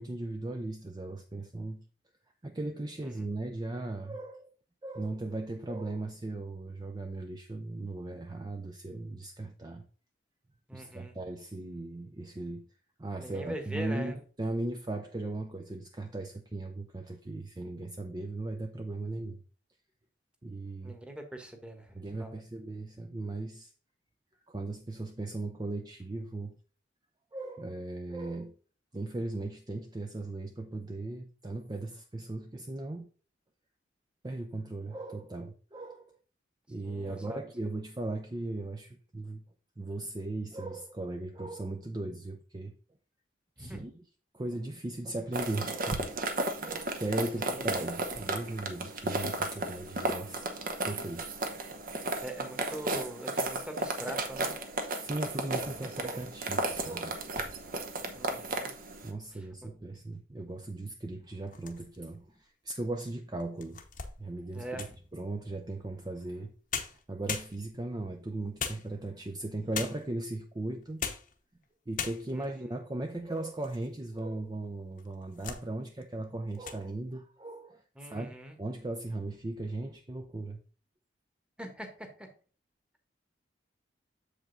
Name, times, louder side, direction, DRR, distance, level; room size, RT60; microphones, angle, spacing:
voice 1, 0.0-1.8 2.4-4.5 4.8-9.9 10.7-12.6 13.0-19.4 20.4-21.0 21.9-23.7 24.5-26.6 27.3-28.5 28.9-33.1 34.2-36.1 36.7-39.4 39.8-42.7 43.6-44.0 44.3-46.3 46.5-50.5 50.8-51.3 55.0-57.2 59.0-63.8 64.2-64.9 65.1-66.5 66.8-71.1 71.9-80.6, right 2 dB, 20° right, 0.5 m, -37 dB
voice 2, 10.7-11.2 13.2-14.2 20.8-22.3 36.8-37.4 43.6-43.8 47.4-47.7 52.2-54.5 55.8-55.9 58.1-58.7 59.3-59.7 64.5-64.9 72.3-72.5 77.9-78.6 81.6-82.3, right 1 dB, 5° right, 1.2 m, -42 dB
sound 1, 45.3-59.1, right 2 dB, 50° right, 1.0 m, -34 dB
sound 2, 61.4-62.2 62.8-62.9 63.4-65.1 66.4-66.5 66.7-67.9 68.6-69.3 69.7-70.2 70.8-71.4 71.6-71.7 72.0-72.5 73.1-73.9 74.2-74.3 75.0-75.7 76.0-76.2 76.5-76.8, left 7 dB, 45° left, 0.9 m, -39 dB
7.3 x 5.1 x 3.9 m
head